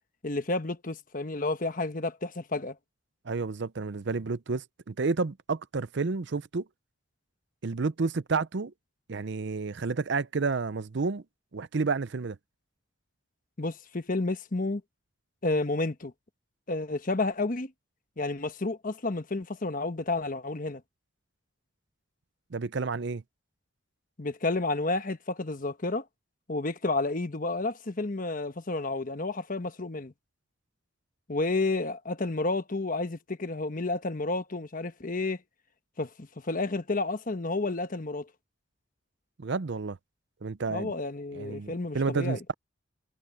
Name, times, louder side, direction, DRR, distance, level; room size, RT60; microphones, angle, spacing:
voice 1, 0.2-2.8 13.6-14.8 15.4-16.1 16.7-17.7 18.2-20.8 24.2-26.0 26.5-30.1 31.3-35.4 36.0-38.3 40.7-42.4, left 2 dB, 40° left, 1.1 m, -31 dB
voice 2, 3.3-6.7 7.6-8.7 9.1-11.2 11.5-12.4 22.5-23.2 39.4-40.0 40.4-40.9 41.3-42.5, right 4 dB, 60° right, 0.6 m, -30 dB
head